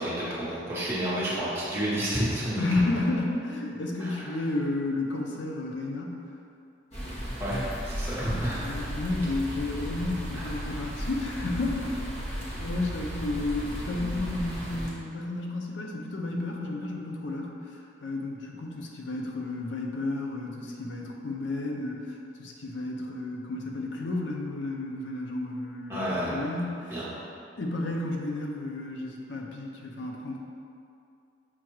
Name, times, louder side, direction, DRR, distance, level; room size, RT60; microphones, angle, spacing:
voice 1, 0.0-2.6 4.0-4.3 7.4-8.8 10.3-10.7 25.9-26.4 26.9-27.0, right 1 dB, 15° right, -9 dB, 0.9 m, -30 dB
voice 2, 2.6-6.2 8.5-27.0 27.6-30.4, left 2 dB, 75° left, 0 dB, 0.5 m, -32 dB
sound 1, 6.9-14.9, equal, 35° left, 0.8 m, -35 dB
5.9 x 2.3 x 3.0 m, 2.5 s
head